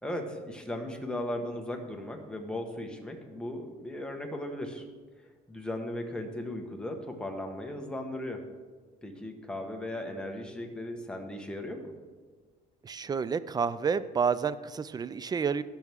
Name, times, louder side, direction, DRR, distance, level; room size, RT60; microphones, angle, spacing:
voice 1, 0.0-4.8 5.5-8.4 9.0-11.9, left 1 dB, 5° left, 2 dB, 1.5 m, -37 dB
voice 2, 12.8-15.6, right 6 dB, 25° right, 16 dB, 0.4 m, -29 dB
17.0 x 6.1 x 3.6 m, 1.4 s
cardioid pair, 110°, 17 cm